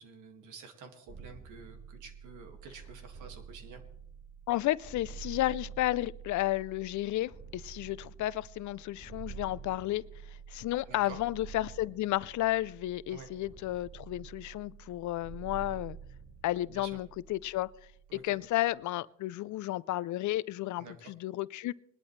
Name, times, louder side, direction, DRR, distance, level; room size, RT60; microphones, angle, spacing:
voice 1, 0.0-3.8 10.9-11.2 13.1-13.3 16.7-17.0 18.1-18.4 20.8-21.1, right 4 dB, 80° right, 2.1 m, -49 dB
sound 1, 1.1-18.7, right 6 dB, 45° right, 3.5 m, -48 dB
voice 2, 4.5-10.0 10.5-16.0 16.4-17.7 18.1-21.7, left 15 dB, 70° left, 0.5 m, -32 dB
20.5 x 11.5 x 3.2 m
cardioid pair, 90°, 30 cm